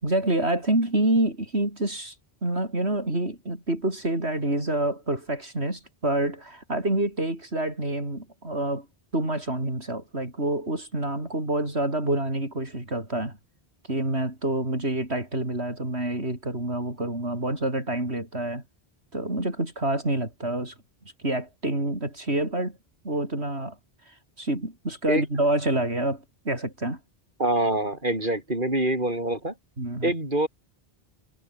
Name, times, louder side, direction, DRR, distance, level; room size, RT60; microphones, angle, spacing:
voice 1, 0.0-2.1 2.4-8.9 9.1-13.4 13.9-18.6 19.1-20.7 21.2-22.8 23.0-23.7 24.1-27.0 29.8-30.1, right 1 dB, 90° right, 6.8 m, -27 dB
voice 2, 27.4-29.5 30.0-30.5, right 1 dB, 50° right, 7.2 m, -25 dB
omnidirectional pair, 1.1 m